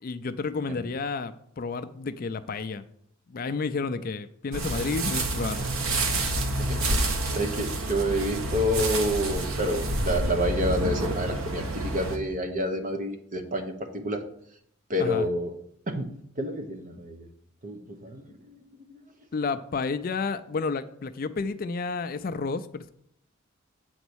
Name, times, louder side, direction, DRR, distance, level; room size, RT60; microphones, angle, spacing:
voice 1, 0.0-2.8 3.3-5.7 15.0-15.3 19.3-22.9, left 4 dB, 45° left, 12 dB, 0.4 m, -31 dB
sound 1, 4.5-12.2, right 2 dB, 90° right, 1.1 m, -28 dB
voice 2, 6.6-14.2 14.9-15.5 15.9-16.1 16.4-17.3 17.6-19.0, equal, 40° right, 5 dB, 0.9 m, -29 dB
7.9 x 4.0 x 6.2 m, 0.69 s
head